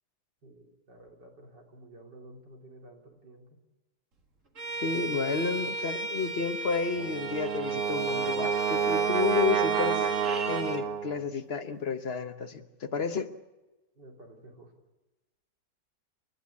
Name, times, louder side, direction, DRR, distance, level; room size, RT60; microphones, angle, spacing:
voice 1, 0.4-3.6 14.0-14.7, right 1 dB, 90° right, 3.9 m, -52 dB
Bowed string instrument, 4.6-10.8, right 2 dB, 45° right, 2.0 m, -35 dB
voice 2, 4.8-10.1 10.5-13.3, left 5 dB, 45° left, 1.1 m, -31 dB
Brass instrument, 7.0-11.3, right 8 dB, 65° right, 1.3 m, -29 dB
29.5 x 12.0 x 8.4 m
omnidirectional pair, 1.8 m